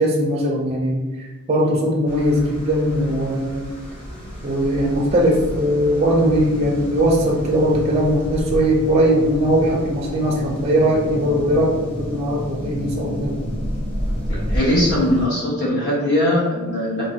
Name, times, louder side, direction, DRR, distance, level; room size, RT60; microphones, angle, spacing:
voice 1, 0.0-3.7 4.4-13.4, equal, 30° right, -2 dB, 0.4 m, -20 dB
sound 1, 2.1-15.3, equal, 25° left, 1.2 m, -30 dB
voice 2, 14.3-17.1, left 1 dB, 55° left, -6 dB, 1.2 m, -20 dB
3.2 x 2.1 x 2.6 m, 1.2 s
head